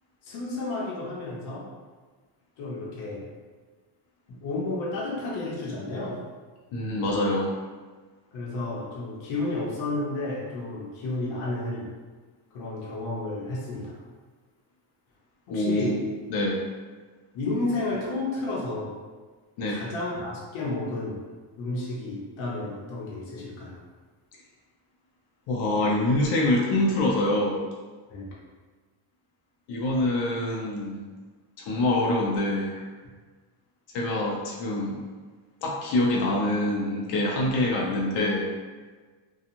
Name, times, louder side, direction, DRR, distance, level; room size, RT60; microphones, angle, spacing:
voice 1, 0.2-1.7 2.6-3.3 4.3-6.2 8.3-11.9 12.5-14.0 15.5-16.0 17.3-19.0 19.7-21.3 21.6-23.8 28.1-28.3, left 2 dB, 90° left, -5 dB, 0.9 m, -32 dB
voice 2, 6.7-7.5 15.5-15.9 16.3-16.6 19.6-19.8 25.5-27.6 29.7-31.0 31.6-32.7 33.9-35.0 35.6-38.5, left 1 dB, 60° left, -3 dB, 0.6 m, -25 dB
2.8 x 2.3 x 2.5 m, 1.4 s
cardioid pair, 160°, 47 cm